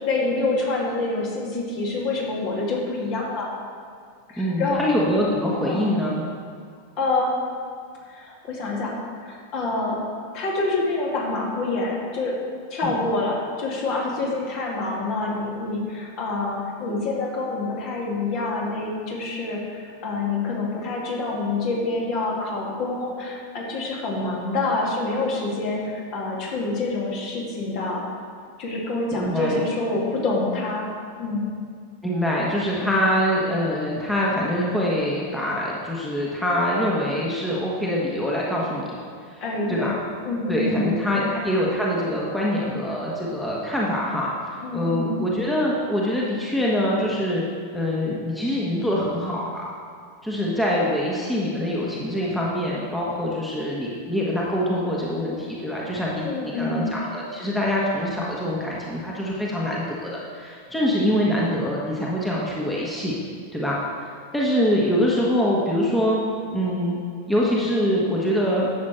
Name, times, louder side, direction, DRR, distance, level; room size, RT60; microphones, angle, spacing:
voice 1, 0.0-3.5 4.3-4.8 5.6-5.8 7.0-7.3 8.1-9.0 9.2-10.0 10.3-12.3 12.7-28.0 28.6-30.9 31.2-31.4 39.4-39.9 40.2-41.3 44.6-45.2 56.2-56.9, left 3 dB, 40° left, -3 dB, 2.4 m, -26 dB
voice 2, 4.4-6.2 12.8-13.1 29.1-29.6 32.0-38.9 39.3-39.4 39.7-39.9 40.5-47.4 47.7-49.6 50.2-63.2 63.5-63.8 64.3-66.2 66.5-67.0 67.3-68.7, equal, 5° left, -5 dB, 1.5 m, -24 dB
11.0 x 7.6 x 4.4 m, 2.2 s
figure-of-eight pair, 90°, 0 cm